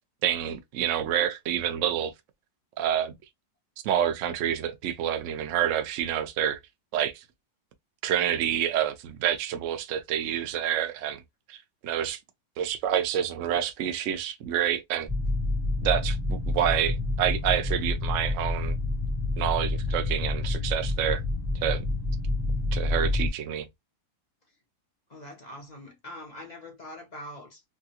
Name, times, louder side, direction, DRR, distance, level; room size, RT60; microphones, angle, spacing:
voice 1, 0.2-2.1 2.8-3.1 3.8-6.6 6.9-7.2 8.0-11.2 11.5-12.2 12.6-15.1 15.8-18.8 19.4-21.2 21.6-21.9 22.7-23.7, right 10 dB, 90° right, 0.6 m, -28 dB
sound 1, 15.1-23.3, left 2 dB, 15° right, 1.1 m, -28 dB
voice 2, 25.1-27.6, left 1 dB, 35° left, 0.6 m, -43 dB
3.5 x 2.2 x 2.8 m
omnidirectional pair, 2.0 m